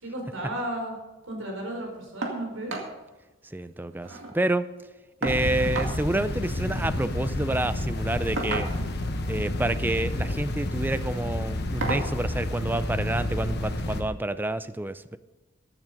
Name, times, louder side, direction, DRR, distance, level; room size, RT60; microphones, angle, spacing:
voice 1, 0.0-0.9 1.2-2.8, right 1 dB, 85° right, 0 dB, 4.4 m, -34 dB
sound 1, 2.2-2.4 2.7-2.9 3.3-3.4 3.7-4.3 5.2-6.0 7.2-7.4 8.4-9.0 10.1-10.4 10.8-11.0 11.8-12.1 13.4-13.5 14.0-14.1, right 2 dB, 70° right, 2.2 m, -32 dB
voice 2, 3.5-4.7 5.2-8.7 9.3-15.2, right 2 dB, 10° right, 13 dB, 0.4 m, -28 dB
sound 2, 5.3-14.0, left 1 dB, 55° left, 1.2 m, -30 dB
14.5 x 9.0 x 5.2 m, 1.1 s
head